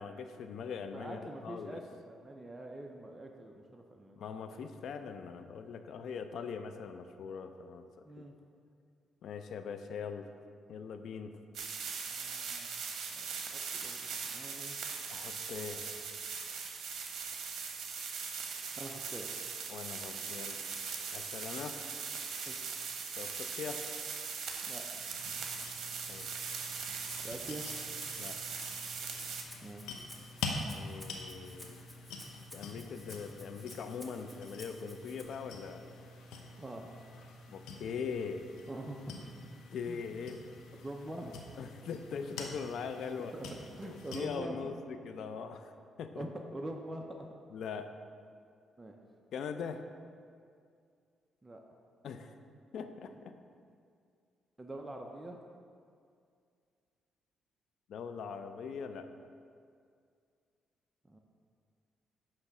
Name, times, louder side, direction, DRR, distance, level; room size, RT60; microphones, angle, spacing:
voice 1, 0.0-1.8 4.2-7.8 8.2-8.3 9.2-10.3 10.7-11.4 15.1-16.0 19.7-20.6 21.1-21.8 23.1-23.9 26.1-26.3 28.2-28.6 30.7-31.8 32.5-35.8 37.5-38.5 39.7-40.4 41.6-43.3 43.8-45.7 46.0-46.2 47.5-47.9 49.3-49.8 52.0-52.4 52.7-53.4 57.9-59.1, left 6 dB, 70° left, 8 dB, 0.5 m, -41 dB
voice 2, 0.9-4.2 8.0-8.3 12.1-12.8 13.1-13.3 13.7-14.8 18.8-19.3 22.5-22.8 24.6-24.9 27.2-27.7 29.6-29.9 36.6-36.9 38.7-39.2 39.9-40.0 40.8-41.4 43.3-43.5 43.8-44.7 46.2-47.3 48.8-49.0 51.4-51.6 54.6-55.4 61.1-61.2, right 1 dB, 15° right, 1 dB, 0.6 m, -44 dB
sound 1, 11.5-29.4, right 5 dB, 70° right, 0.9 m, -40 dB
sound 2, 25.0-44.2, left 3 dB, 85° left, 0.9 m, -46 dB
Rattle (instrument), 25.6-35.2, equal, 5° left, 1.2 m, -54 dB
9.7 x 3.3 x 6.0 m, 2.3 s
cardioid pair, 90°, 0 cm